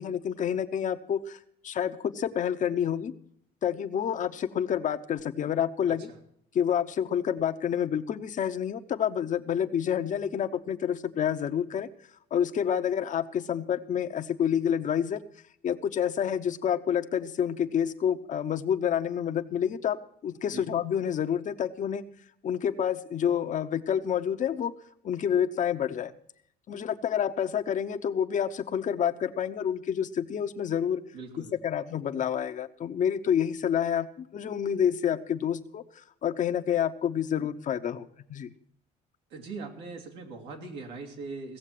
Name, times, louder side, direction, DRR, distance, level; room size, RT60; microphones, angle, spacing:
voice 1, 0.0-1.4 1.6-3.1 3.6-6.1 6.5-11.9 12.3-15.2 15.6-22.0 22.4-24.7 25.0-26.1 26.7-31.0 31.4-38.5, left 8 dB, 50° left, 9 dB, 0.9 m, -28 dB
voice 2, 5.9-6.2 20.5-20.7 31.1-31.6 39.3-41.6, right 4 dB, 90° right, 2 dB, 2.7 m, -41 dB
16.5 x 7.3 x 7.6 m, 0.69 s
cardioid pair, 110°, 17 cm